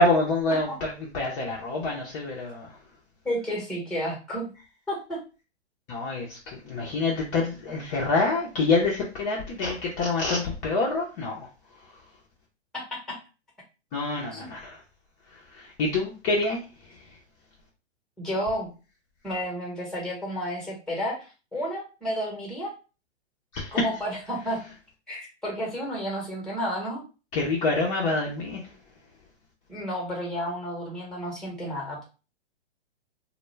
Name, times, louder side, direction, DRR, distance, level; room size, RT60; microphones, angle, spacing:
voice 1, 0.0-2.7 5.9-11.5 13.9-14.8 15.5-16.6 23.5-23.8 27.3-28.6, left 3 dB, 30° left, 0.5 m, -26 dB
voice 2, 3.2-4.5 4.9-5.2 12.7-13.2 14.3-14.5 18.2-18.7 19.2-22.7 23.7-24.6 25.1-27.0 29.7-32.0, equal, ahead, 0.9 m, -31 dB
2.2 x 2.1 x 3.1 m
hypercardioid pair, 130°, 33 cm